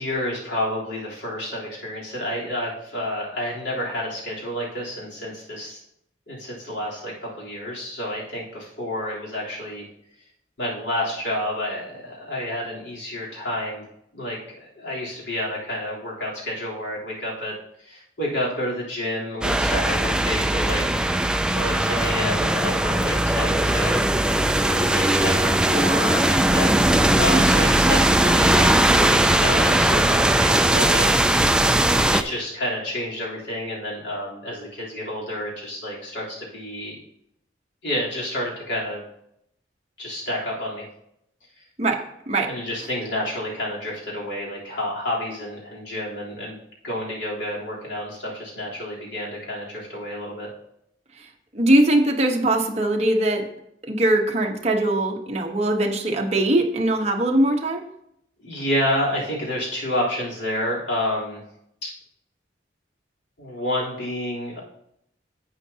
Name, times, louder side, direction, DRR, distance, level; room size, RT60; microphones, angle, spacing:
voice 1, 0.0-5.8 6.3-9.9 10.6-13.8 14.1-17.5 17.8-21.0 21.5-24.0 24.3-31.2 31.9-37.0 37.8-39.0 40.0-40.9 42.4-46.6 46.8-50.5 58.4-61.4 61.8-61.9 63.4-64.6, left 1 dB, 80° left, -5 dB, 3.6 m, -29 dB
sound 1, 19.4-32.2, right 1 dB, 5° right, 0.3 m, -19 dB
voice 2, 51.5-53.4 53.8-57.8, right 1 dB, 35° right, 2 dB, 1.2 m, -21 dB
11.0 x 8.4 x 2.9 m, 0.76 s
head